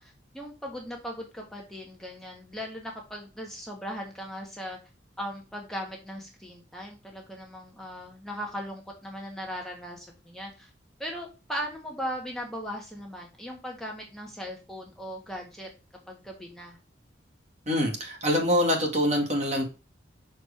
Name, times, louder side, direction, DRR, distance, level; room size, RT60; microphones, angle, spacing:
voice 1, 0.0-4.8 5.2-10.7 11.0-15.7 16.1-16.8, equal, ahead, -1 dB, 1.3 m, -38 dB
voice 2, 17.7-19.6, equal, 40° right, 2 dB, 1.9 m, -25 dB
6.1 x 4.7 x 3.4 m, 0.30 s
head